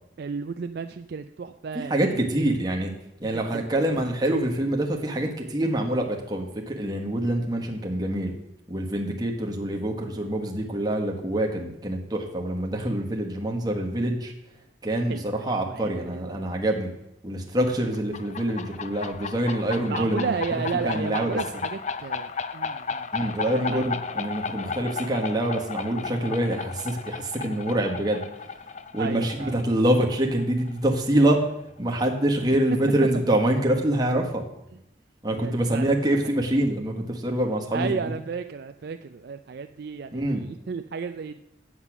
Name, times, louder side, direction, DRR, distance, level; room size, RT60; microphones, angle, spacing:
voice 1, 0.2-2.4 3.3-3.7 15.1-16.5 19.9-23.1 23.5-23.8 29.0-29.6 33.1-33.2 35.3-36.2 36.4-36.6 37.7-41.4, right 5 dB, 55° right, 8 dB, 0.4 m, -33 dB
voice 2, 1.7-2.9 3.2-8.3 8.7-14.3 14.8-16.9 17.2-20.3 20.8-21.4 23.1-28.2 28.9-31.4 31.8-34.4 35.2-38.1 40.1-40.4, right 1 dB, 20° right, 1 dB, 1.3 m, -25 dB
sound 1, 17.9-31.3, left 5 dB, 35° left, 0.4 m, -34 dB
8.2 x 7.4 x 6.0 m, 0.82 s
head